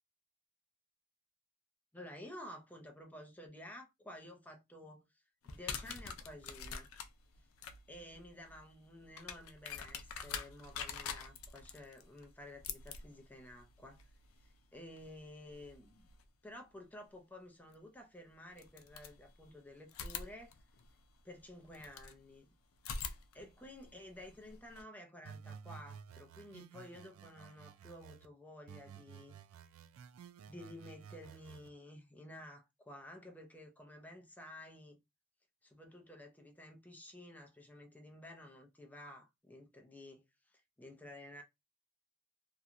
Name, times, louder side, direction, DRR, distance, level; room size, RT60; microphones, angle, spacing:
voice 1, 1.9-5.2 5.5-6.9 7.9-14.1 14.4-16.1 16.4-20.5 21.2-22.5 23.3-29.4 30.5-35.0 35.6-41.4, left 1 dB, 10° left, 0.5 m, -52 dB
sound 1, 5.4-16.2 17.7-17.8 18.5-19.5 19.9-22.2 22.8-24.8, left 6 dB, 75° left, 0.4 m, -47 dB
sound 2, 25.2-28.3 28.7-31.7, right 7 dB, 70° right, 0.3 m, -53 dB
2.9 x 2.2 x 2.5 m
head